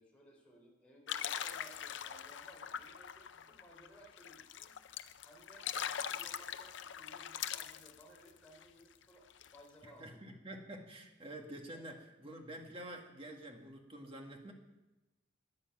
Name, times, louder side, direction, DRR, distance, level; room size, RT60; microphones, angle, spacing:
voice 1, 0.0-4.7 5.2-10.3 14.0-14.1, equal, 5° left, -3 dB, 3.6 m, -60 dB
sound 1, 1.1-8.6 9.0-9.1 9.3-9.6, left 9 dB, 65° left, 0.5 m, -42 dB
voice 2, 9.8-14.5, right 1 dB, 25° right, 2 dB, 1.7 m, -48 dB
16.0 x 9.9 x 5.9 m, 1.0 s
head